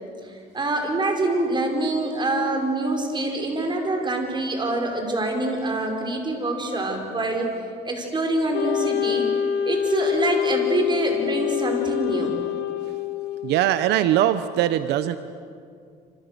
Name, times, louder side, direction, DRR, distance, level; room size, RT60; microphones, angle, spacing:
voice 1, 0.3-7.5 7.9-9.3 9.7-12.3, right 2 dB, 25° right, 3 dB, 5.6 m, -25 dB
Wind instrument woodwind instrument, 8.5-13.6, left 10 dB, 90° left, 1.9 m, -26 dB
voice 2, 13.4-15.2, right 12 dB, 85° right, 12 dB, 1.0 m, -21 dB
28.0 x 27.0 x 6.9 m, 2.3 s
cardioid pair, 110°, 17 cm